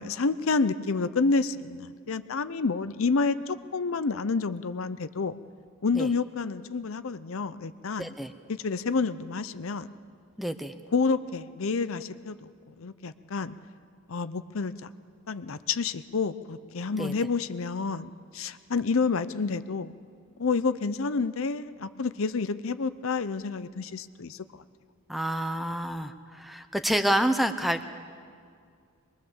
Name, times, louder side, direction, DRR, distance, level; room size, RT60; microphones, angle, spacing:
voice 1, 0.0-5.4 5.8-8.1 8.6-9.9 10.9-12.5 12.8-13.6 14.1-14.9 15.3-19.9 20.4-24.4, left 4 dB, 70° left, 13 dB, 0.6 m, -29 dB
voice 2, 8.0-8.3 10.4-10.7 16.9-17.1 25.1-27.9, right 1 dB, ahead, 8 dB, 0.7 m, -28 dB
23.5 x 21.5 x 7.2 m, 2.2 s
head